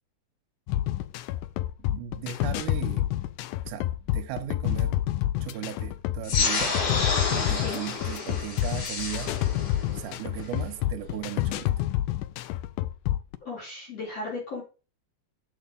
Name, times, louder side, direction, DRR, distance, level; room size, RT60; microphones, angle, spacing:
sound 1, 0.7-13.4, left 13 dB, 80° left, 2.0 m, -28 dB
voice 1, 1.9-3.1 3.6-5.0 5.4-6.8 7.3-9.4 9.9-11.8, right 10 dB, 75° right, 2.3 m, -37 dB
sound 2, 6.2-11.3, left 4 dB, 65° left, 3.6 m, -30 dB
voice 2, 13.4-14.6, left 3 dB, 45° left, 4.7 m, -35 dB
7.0 x 6.7 x 5.2 m
omnidirectional pair, 3.9 m